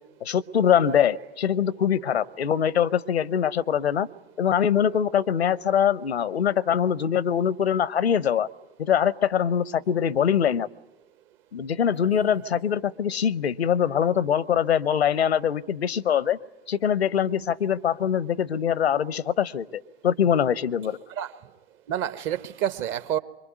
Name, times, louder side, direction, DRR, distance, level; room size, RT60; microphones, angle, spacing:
voice 1, 0.2-4.1 4.4-8.5 8.8-10.7 11.5-16.4 16.7-21.0, left 8 dB, 75° left, 0.9 m, -23 dB
voice 2, 12.0-12.4 21.2-21.3 21.9-23.2, right 10 dB, 40° right, 1.1 m, -29 dB
25.5 x 23.0 x 9.2 m
figure-of-eight pair, 90°, 32 cm